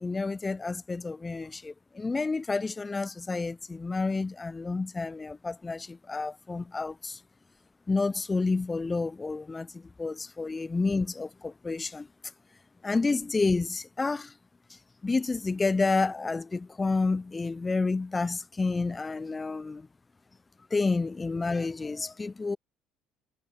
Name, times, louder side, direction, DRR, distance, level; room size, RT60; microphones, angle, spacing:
voice 1, 0.0-7.2 7.9-12.1 12.8-14.3 15.0-19.9 20.7-22.6, left 3 dB, 20° left, 1.1 m, -29 dB
hypercardioid pair, 70°, 0 cm